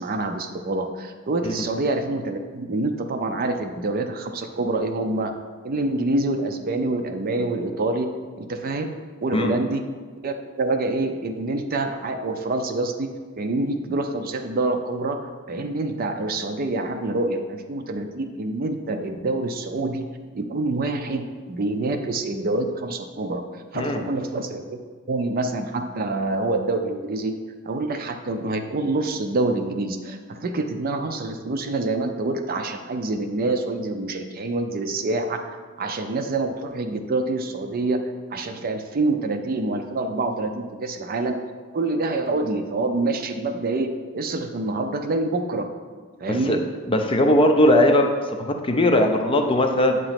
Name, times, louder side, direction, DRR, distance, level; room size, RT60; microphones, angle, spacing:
voice 1, 0.0-5.3 5.6-8.9 9.2-9.8 10.2-13.1 13.4-15.2 15.5-20.1 20.3-23.4 23.7-24.8 25.1-27.3 27.7-35.4 35.8-38.0 38.3-41.4 41.7-45.7 46.2-46.6, right 2 dB, 45° right, 6 dB, 0.5 m, -26 dB
voice 2, 46.3-46.6 46.9-50.0, left 1 dB, 25° left, 4 dB, 0.5 m, -19 dB
7.5 x 2.9 x 5.8 m, 1.5 s
head